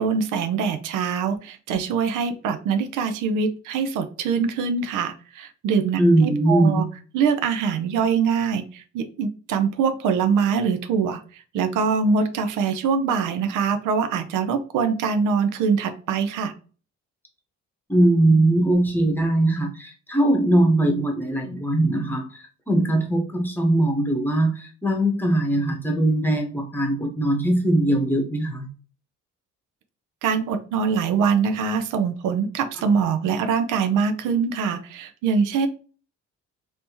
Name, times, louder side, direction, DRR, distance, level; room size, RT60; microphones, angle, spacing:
voice 1, 0.0-6.9 7.1-16.5 30.2-35.7, right 6 dB, 85° right, 9 dB, 0.6 m, -23 dB
voice 2, 6.0-6.9 17.9-28.7, right 1 dB, 5° left, 2 dB, 1.0 m, -21 dB
3.4 x 2.8 x 2.9 m, 0.38 s
cardioid pair, 90°, 30 cm